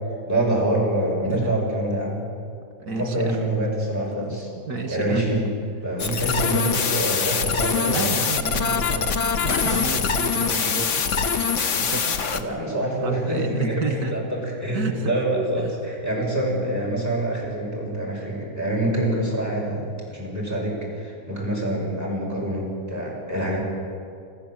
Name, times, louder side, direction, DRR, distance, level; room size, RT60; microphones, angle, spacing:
voice 1, 0.3-2.3 2.9-4.5 4.9-5.5 5.8-8.2 12.3-23.6, right 1 dB, 10° right, -4 dB, 6.4 m, -26 dB
voice 2, 2.8-3.3 4.2-4.4 4.7-5.2 7.8-9.1 9.4-10.9 11.8-12.2 13.0-14.1 14.7-15.1, right 4 dB, 90° right, 5 dB, 2.3 m, -30 dB
sound 1, 6.0-12.4, left 6 dB, 55° left, 1.3 m, -23 dB
27.5 x 14.0 x 7.7 m, 2.4 s
omnidirectional pair, 1.6 m